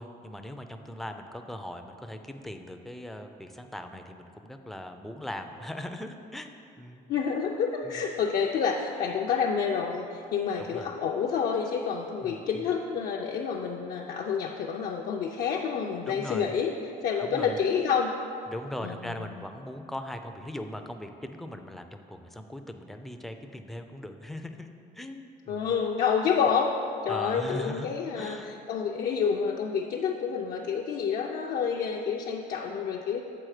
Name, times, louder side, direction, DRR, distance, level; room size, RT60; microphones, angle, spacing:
voice 1, 0.0-7.0 7.9-8.0 10.6-10.9 12.2-12.7 16.1-16.6 17.2-17.6 18.5-25.7 27.1-28.5, left 1 dB, ahead, 6 dB, 0.4 m, -40 dB
voice 2, 7.1-16.7 17.0-18.1 18.8-19.2 25.5-26.7 27.0-33.2, left 6 dB, 60° left, -1 dB, 0.5 m, -28 dB
7.7 x 4.1 x 4.9 m, 2.7 s
cardioid pair, 110°, 17 cm